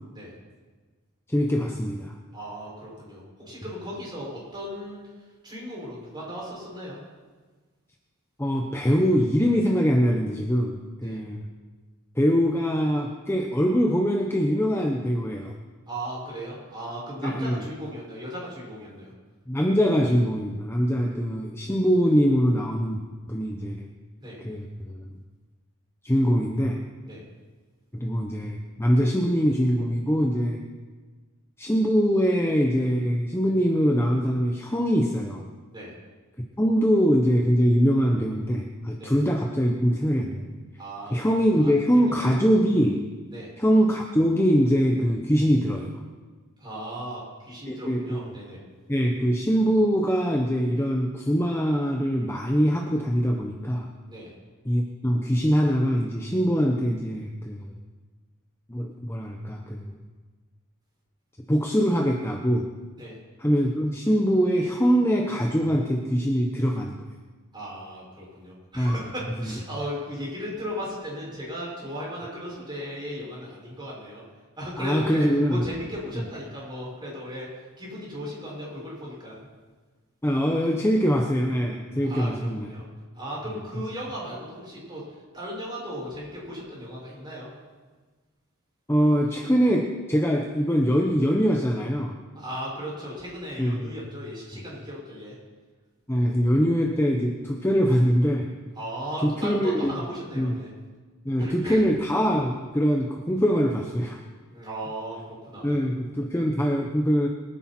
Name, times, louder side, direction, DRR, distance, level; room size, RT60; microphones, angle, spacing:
voice 1, 1.3-2.1 8.4-11.4 12.2-15.5 17.2-17.6 19.5-23.0 23.3-23.8 24.4-25.2 26.0-26.8 27.9-30.6 31.6-35.4 36.6-40.5 41.1-43.0 43.6-45.9 47.7-48.3 48.9-53.9 54.6-57.7 58.7-59.9 61.5-62.7 63.4-67.0 68.8-69.0 74.8-75.6 80.2-82.7 88.9-92.2 93.6-93.9 94.5-94.6 96.1-98.5 99.2-99.9 100.3-100.6 101.2-104.2 105.6-107.3, equal, 10° left, 1 dB, 0.9 m, -23 dB
voice 2, 2.3-5.0 5.4-7.0 11.0-11.2 15.9-19.1 24.2-24.4 27.0-27.2 35.7-35.9 39.0-39.1 40.8-42.0 43.3-43.5 46.6-48.6 54.1-54.3 63.0-63.2 67.5-74.2 74.6-77.5 77.8-79.4 82.0-82.8 83.1-87.5 92.3-95.3 98.7-100.7 101.4-101.9 104.5-105.8, equal, 20° right, -5 dB, 6.0 m, -36 dB
23.0 x 10.0 x 4.4 m, 1.4 s
head